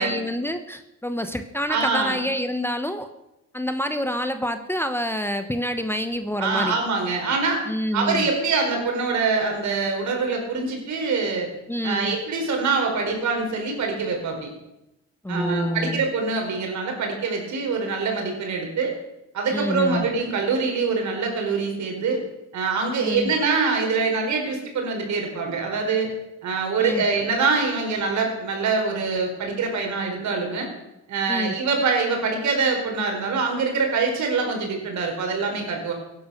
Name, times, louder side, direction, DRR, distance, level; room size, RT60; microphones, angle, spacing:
voice 1, 0.0-3.1 3.5-6.7 7.7-8.3 11.7-12.2 15.2-16.0 19.5-20.1 23.0-23.3 26.8-27.0 31.3-31.5, equal, 10° left, 8 dB, 1.0 m, -27 dB
voice 2, 1.7-2.2 6.4-7.6 7.9-11.5 11.8-14.5 15.3-18.9 19.3-22.2 22.5-26.1 26.4-30.7 31.1-35.9, right 4 dB, 70° right, 2 dB, 4.8 m, -24 dB
16.5 x 10.5 x 6.5 m, 0.91 s
cardioid pair, 90°, 30 cm